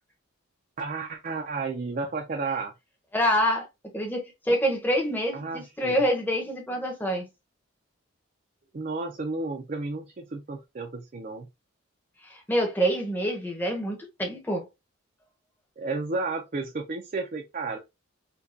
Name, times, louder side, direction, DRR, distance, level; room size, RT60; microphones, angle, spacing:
voice 1, 0.8-2.7 5.3-6.0 8.7-11.5 15.8-17.8, right 3 dB, 40° right, 0.4 m, -32 dB
voice 2, 3.1-3.7 3.9-7.3 12.3-14.7, equal, 10° left, 0.8 m, -26 dB
5.1 x 2.3 x 2.5 m
head